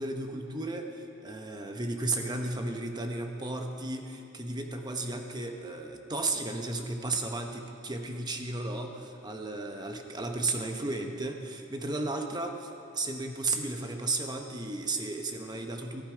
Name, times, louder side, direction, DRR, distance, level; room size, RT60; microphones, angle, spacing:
voice 1, 0.0-16.0, right 2 dB, 20° right, 4 dB, 1.0 m, -34 dB
17.5 x 14.0 x 5.1 m, 2.7 s
head